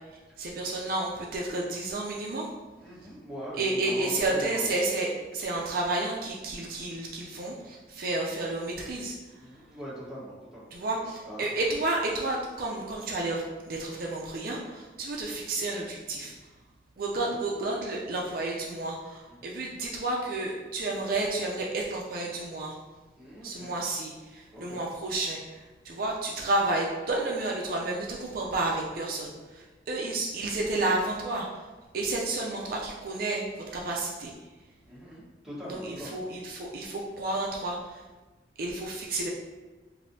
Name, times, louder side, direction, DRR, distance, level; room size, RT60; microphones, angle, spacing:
voice 1, 0.4-2.5 3.6-9.1 10.7-16.3 17.0-22.8 23.4-31.7 31.9-33.4 33.7-34.3 35.7-38.0 38.6-39.3, right 2 dB, 55° right, -2 dB, 0.4 m, -31 dB
voice 2, 2.8-4.7 9.4-10.7 11.2-11.5 17.3-17.5 19.4-19.5 23.2-23.7 24.5-24.8 34.9-36.2, equal, ahead, -9 dB, 1.1 m, -42 dB
5.1 x 2.6 x 2.6 m, 1.2 s
head